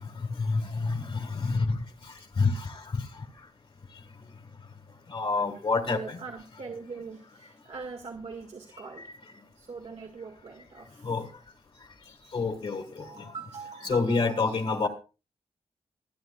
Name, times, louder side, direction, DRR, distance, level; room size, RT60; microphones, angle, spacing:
voice 1, 0.2-1.8 2.4-2.8 5.1-6.2 11.0-11.3 12.3-13.1 13.8-14.9, left 4 dB, 55° left, 5 dB, 1.8 m, -27 dB
voice 2, 5.9-9.1 9.6-11.1 13.0-14.9, right 5 dB, 75° right, 0 dB, 1.9 m, -42 dB
24.5 x 9.3 x 2.3 m, 0.32 s
wide cardioid pair, 115°, 11 cm